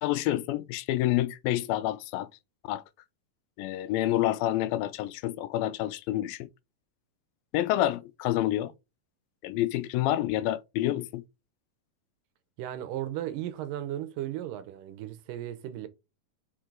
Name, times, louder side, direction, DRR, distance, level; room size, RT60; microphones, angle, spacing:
voice 1, 0.0-2.3 2.6-2.8 3.6-6.5 7.5-8.7 9.4-11.2, left 14 dB, 90° left, 2.4 m, -28 dB
voice 2, 12.6-15.9, right 12 dB, 80° right, 2.3 m, -35 dB
6.8 x 4.6 x 3.8 m
omnidirectional pair, 4.0 m